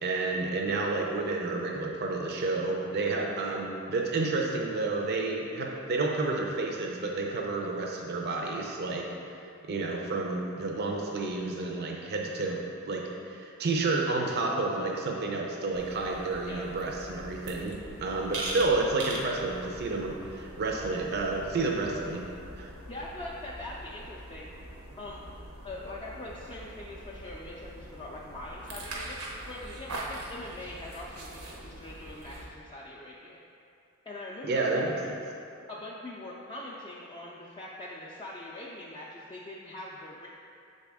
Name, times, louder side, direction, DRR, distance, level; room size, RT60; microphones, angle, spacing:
voice 1, 0.0-9.4 9.6-12.6 12.9-22.3 22.6-22.7 34.4-35.1, right 3 dB, 50° right, 0 dB, 0.5 m, -30 dB
sound 1, 15.7-32.5, right 2 dB, 85° right, 0.8 m, -42 dB
voice 2, 22.9-24.5 25.0-25.3 25.6-33.4 34.1-34.8 35.2-35.3 35.7-40.3, left 1 dB, 20° left, -5 dB, 0.4 m, -42 dB
6.5 x 4.1 x 3.5 m, 2.5 s
head